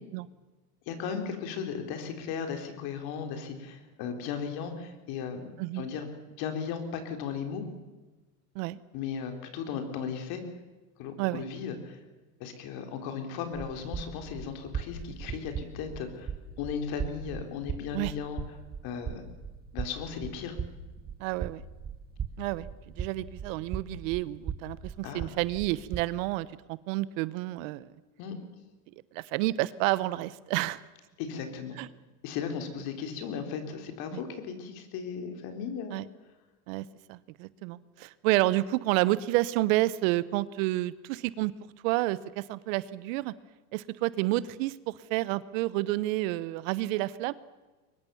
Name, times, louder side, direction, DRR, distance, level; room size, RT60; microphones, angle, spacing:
voice 1, 0.9-5.4 5.7-6.1 6.4-7.6 8.9-10.4 11.0-12.0 12.4-16.3 16.6-18.4 18.8-19.2 19.7-20.6 25.0-25.3 28.2-28.3 31.2-31.8 32.2-35.9, left 6 dB, 50° left, 6 dB, 4.3 m, -36 dB
sound 1, 13.5-26.0, right 7 dB, 20° right, 1.4 m, -39 dB
voice 2, 21.2-21.6 22.4-22.7 23.0-27.9 29.1-30.8 31.8-31.9 34.1-34.2 35.9-36.0 36.7-41.5 41.8-43.3 43.7-47.3, right 18 dB, 60° right, 19 dB, 1.0 m, -30 dB
23.0 x 20.5 x 7.2 m, 1.2 s
supercardioid pair, 125°, 45 cm